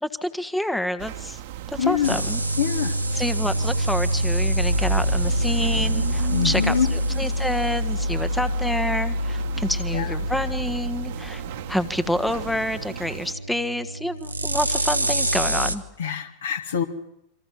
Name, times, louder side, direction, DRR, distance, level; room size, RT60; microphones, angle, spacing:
voice 1, 0.0-1.4 1.7-2.4 3.1-11.4 11.7-15.8, left 1 dB, 5° left, 11 dB, 1.4 m, -28 dB
sound 1, 1.0-13.3, right 12 dB, 55° right, 1.7 m, -36 dB
voice 2, 1.8-2.2 2.6-2.9 6.3-6.9 9.9-10.1 16.0-16.8, left 8 dB, 65° left, 5 dB, 3.0 m, -24 dB
sound 2, 2.0-15.8, equal, 85° right, 1.6 m, -26 dB
28.0 x 25.5 x 7.5 m, 0.78 s
figure-of-eight pair, 90°, 0 cm